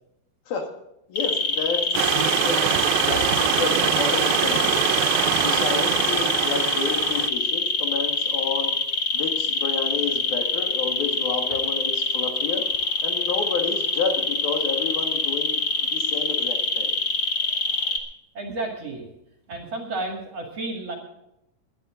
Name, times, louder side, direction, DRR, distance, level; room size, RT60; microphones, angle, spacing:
voice 1, 1.1-2.6 3.0-5.0 5.4-8.7 9.1-12.7 13.0-17.0, left 5 dB, 65° left, 4 dB, 3.5 m, -30 dB
sound 1, 1.1-18.0, left 3 dB, 45° left, 1.2 m, -24 dB
Stream / Liquid, 1.9-7.3, right 12 dB, 75° right, 2.4 m, -24 dB
voice 2, 3.0-3.4 4.9-6.0 11.5-11.6 18.3-19.1 19.5-21.0, right 2 dB, 45° right, 2 dB, 2.8 m, -33 dB
21.0 x 10.5 x 3.8 m, 0.86 s
omnidirectional pair, 4.7 m